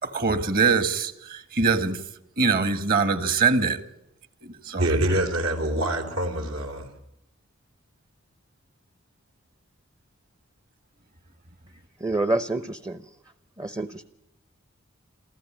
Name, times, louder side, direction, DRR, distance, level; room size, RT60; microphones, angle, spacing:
voice 1, 0.0-2.0 2.4-3.8 4.4-4.8, right 4 dB, 45° right, 1.8 m, -23 dB
voice 2, 4.8-6.9, right 1 dB, 80° right, 4.3 m, -25 dB
voice 3, 12.0-13.0 13.6-14.0, right 2 dB, 15° right, 0.8 m, -27 dB
27.5 x 14.5 x 8.8 m
head